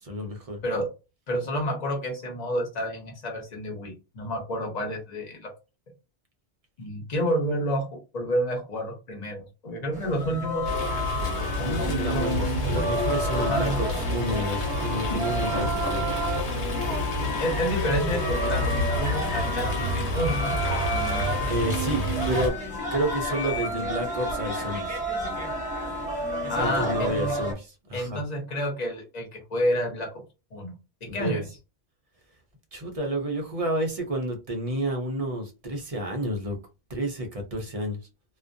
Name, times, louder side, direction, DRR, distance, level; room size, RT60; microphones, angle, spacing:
voice 1, 0.0-0.6 11.6-16.1 21.5-22.5 22.9-25.0 26.6-28.2 31.1-31.4 32.7-36.6 36.9-38.0, right 1 dB, 40° right, 0.6 m, -30 dB
voice 2, 1.3-5.5 6.8-7.9 8.1-10.7 11.6-12.9 13.4-13.8 15.1-15.2 17.4-20.5 26.5-27.3 27.9-30.1 30.5-30.8 31.0-31.4, equal, 40° left, 0.9 m, -29 dB
sound 1, 9.9-27.5, equal, 10° right, 0.8 m, -31 dB
Fowl, 10.6-22.5, left 1 dB, 80° left, 1.1 m, -29 dB
2.3 x 2.2 x 2.5 m
omnidirectional pair, 1.1 m